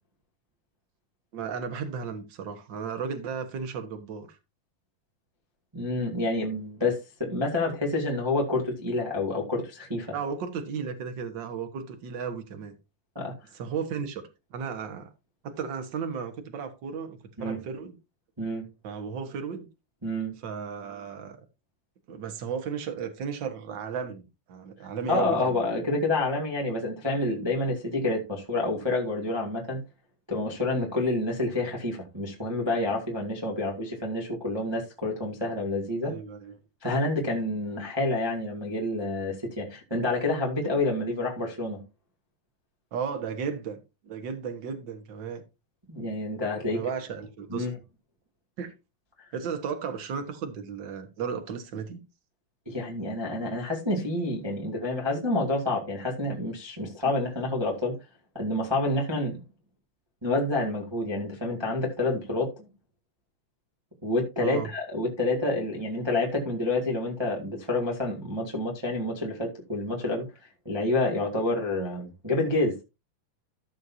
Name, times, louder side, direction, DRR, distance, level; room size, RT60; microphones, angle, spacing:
voice 1, 1.3-4.3 10.1-12.7 13.5-14.2 14.5-15.1 15.4-18.0 18.8-19.7 20.4-21.4 22.1-24.2 24.5-25.6 36.0-36.6 42.9-43.8 44.0-45.4 46.7-47.7 48.6-48.7 49.3-52.0 64.4-64.7, right 6 dB, 55° right, 1.2 m, -34 dB
voice 2, 5.7-10.1 13.1-13.3 17.4-17.6 18.4-18.6 20.0-20.3 25.1-29.8 30.3-36.1 36.8-41.8 45.9-46.8 47.5-47.7 52.6-57.9 58.3-59.4 60.2-62.7 64.0-72.7, left 2 dB, 10° right, 1.4 m, -28 dB
14.0 x 6.5 x 2.7 m
omnidirectional pair, 4.0 m